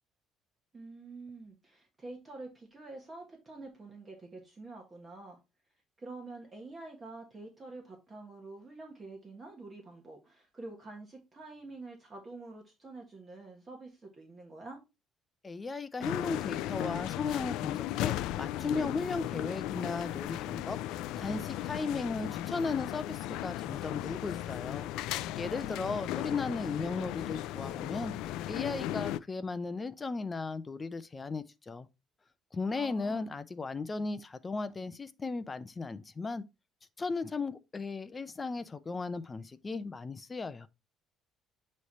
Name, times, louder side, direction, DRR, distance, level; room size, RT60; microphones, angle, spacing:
voice 1, 0.7-5.4 6.0-14.8 32.7-33.3, right 3 dB, 20° right, 1.5 m, -47 dB
voice 2, 15.4-20.8 21.1-24.9 25.4-28.1 28.5-31.9 32.5-36.4 37.0-40.7, left 4 dB, 20° left, 0.5 m, -36 dB
sound 1, 16.0-29.2, left 13 dB, 85° left, 0.3 m, -36 dB
8.3 x 3.2 x 4.1 m
cardioid pair, 140°, 0 cm